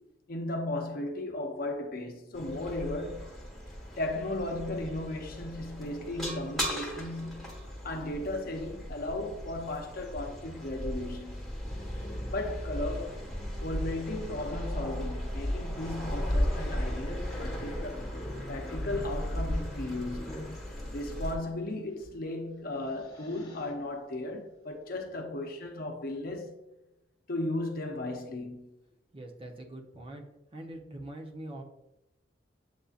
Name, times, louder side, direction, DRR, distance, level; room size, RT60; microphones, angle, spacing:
voice 1, 0.3-3.3 4.0-11.5 12.3-13.2 13.6-18.1 18.5-20.5 20.9-26.6 27.3-28.7, left 1 dB, 50° left, 0.7 m, -36 dB
sound 1, 2.3-21.4, equal, ahead, 1.3 m, -36 dB
Growling, 11.6-20.6 22.0-22.2 22.6-23.7, left 1 dB, 30° left, 1.2 m, -45 dB
voice 2, 29.1-30.2 30.5-31.6, right 1 dB, 30° right, 0.6 m, -43 dB
7.9 x 2.7 x 2.4 m
head